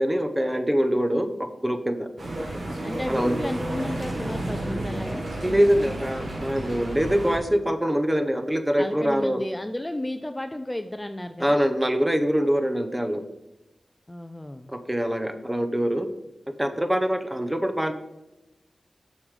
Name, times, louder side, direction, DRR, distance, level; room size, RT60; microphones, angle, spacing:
voice 1, 0.0-2.1 3.1-3.3 5.4-9.4 11.4-13.2 14.7-16.1 16.6-17.9, equal, 15° right, 8 dB, 0.9 m, -24 dB
sound 1, 2.2-7.4, right 1 dB, 60° right, 2.3 m, -31 dB
voice 2, 2.8-5.3 8.8-11.6 14.1-14.7, left 1 dB, 15° left, 8 dB, 0.5 m, -33 dB
7.1 x 6.4 x 5.0 m, 0.99 s
wide cardioid pair, 70°, 0 cm